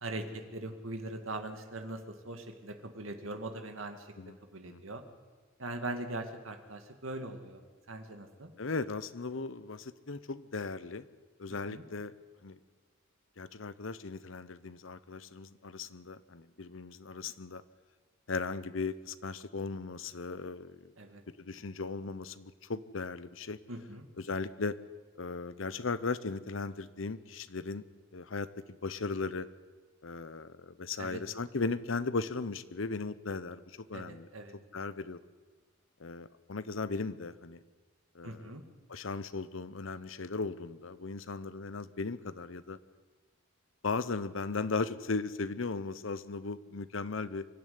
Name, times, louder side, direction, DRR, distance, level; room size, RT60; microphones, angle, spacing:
voice 1, 0.0-4.1 4.5-5.0 5.6-7.6 7.9-8.5 11.7-11.8 21.0-21.2 23.7-24.1 31.0-31.2 33.9-34.5 38.2-38.6, right 2 dB, 75° right, 5 dB, 2.2 m, -41 dB
voice 2, 8.6-11.1 11.4-12.1 12.4-12.6 13.4-17.6 18.3-20.9 21.4-23.6 24.2-24.8 25.2-27.8 28.1-28.5 28.8-29.5 30.0-33.6 33.9-35.2 36.0-37.6 38.1-38.5 38.9-42.8 43.8-47.5, left 4 dB, 65° left, 14 dB, 0.8 m, -37 dB
24.5 x 12.5 x 9.6 m, 1.4 s
head